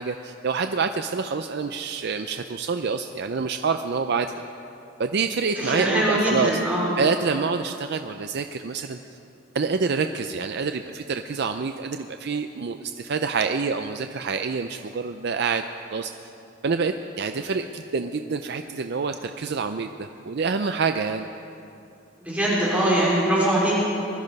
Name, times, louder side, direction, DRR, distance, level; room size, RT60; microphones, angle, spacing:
voice 1, 0.0-4.4 5.0-6.6 7.0-9.0 9.5-15.6 15.9-16.1 16.6-21.3, right 5 dB, 55° right, 7 dB, 0.5 m, -27 dB
voice 2, 5.6-6.9 22.2-23.8, right 1 dB, 10° right, -6 dB, 3.4 m, -22 dB
20.5 x 13.0 x 5.4 m, 2.8 s
head